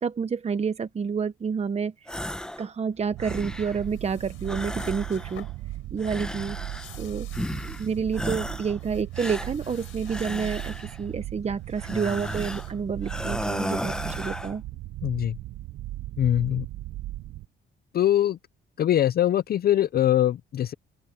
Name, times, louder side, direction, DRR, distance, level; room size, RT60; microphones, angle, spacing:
voice 1, 0.0-2.2 2.6-5.4 5.9-6.6 7.0-7.3 7.8-14.6, right 6 dB, 30° right, 0.9 m, -29 dB
sound 1, 2.1-2.7 3.0-3.9 4.4-5.5 6.0-7.0 7.3-7.9 8.1-8.8 9.1-11.0 11.8-12.7 13.0-14.6, left 1 dB, 5° left, 1.1 m, -34 dB
sound 2, 3.1-17.5, right 16 dB, 80° right, 0.7 m, -37 dB
sound 3, 3.6-14.0, left 13 dB, 85° left, 4.5 m, -54 dB
voice 2, 15.0-15.4 16.2-16.7 17.9-18.4 18.8-20.7, left 11 dB, 50° left, 0.5 m, -22 dB
open air
cardioid pair, 90°, 20 cm